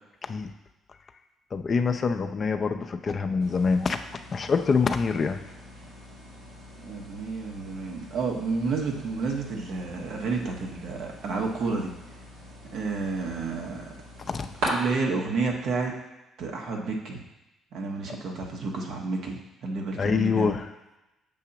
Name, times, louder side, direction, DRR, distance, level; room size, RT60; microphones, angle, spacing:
voice 1, 0.2-0.5 1.5-4.0 4.3-5.4 14.2-14.5 18.1-18.2 20.0-20.7, left 5 dB, 45° left, 7 dB, 0.5 m, -25 dB
sound 1, 3.4-14.7, right 1 dB, 85° right, 2.1 m, -42 dB
voice 2, 6.8-11.9 12.7-13.8 14.7-15.9 16.4-17.2 17.7-20.5, right 4 dB, 65° right, 0 dB, 1.2 m, -30 dB
6.9 x 2.8 x 5.8 m, 0.97 s
supercardioid pair, 65°, 0 cm